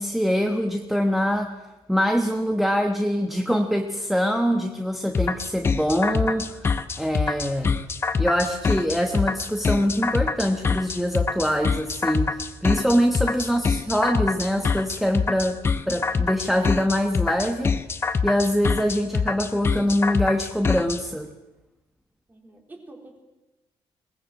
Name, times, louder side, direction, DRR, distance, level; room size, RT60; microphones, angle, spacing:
voice 1, 0.0-1.5 1.9-7.8 8.2-15.6 15.9-17.7 18.2-21.3, equal, ahead, 4 dB, 1.1 m, -24 dB
sound 1, 5.1-21.0, left 5 dB, 25° left, 0.9 m, -25 dB
voice 2, 22.3-23.2, right 2 dB, 15° right, 1 dB, 4.0 m, -47 dB
22.5 x 20.0 x 7.5 m, 1.0 s
cardioid pair, 170°, 10 cm